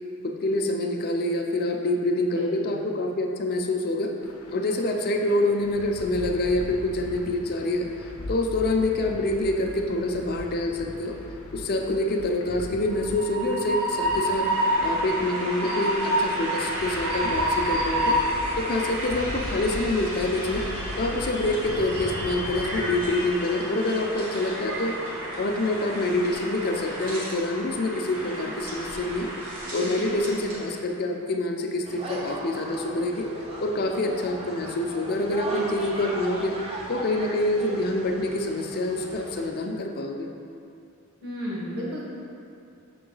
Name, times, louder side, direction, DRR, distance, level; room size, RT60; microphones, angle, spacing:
voice 1, 0.2-4.1 4.5-11.1 11.5-14.5 14.8-18.2 18.6-20.7 21.0-25.1 25.4-33.3 33.6-36.6 36.9-40.3, left 2 dB, 45° left, 2 dB, 0.5 m, -26 dB
voice 2, 2.2-2.9 30.1-30.3 41.2-42.0, equal, 50° right, -6 dB, 1.3 m, -34 dB
sound 1, 4.2-23.1, left 2 dB, 80° left, 0.7 m, -40 dB
Train, 12.9-30.7, right 1 dB, 85° right, 1.5 m, -30 dB
sound 2, 31.8-39.5, right 1 dB, 25° right, 0.7 m, -37 dB
6.6 x 3.8 x 3.9 m, 2.6 s
head